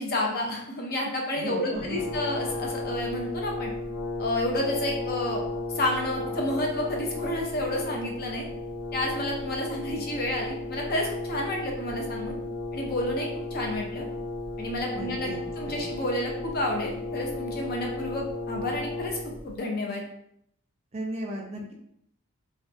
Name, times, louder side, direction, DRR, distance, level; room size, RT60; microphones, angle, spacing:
voice 1, 0.0-3.7 4.2-5.4 5.7-8.5 8.9-12.4 12.7-14.1 14.6-20.0, left 1 dB, 40° left, 0 dB, 0.4 m, -30 dB
voice 2, 1.3-2.0 14.9-15.4 15.7-15.8 20.9-21.7, right 1 dB, 30° right, -1 dB, 0.3 m, -35 dB
Brass instrument, 1.7-19.5, left 2 dB, 65° left, 1.1 m, -34 dB
2.5 x 2.2 x 2.3 m, 0.74 s
head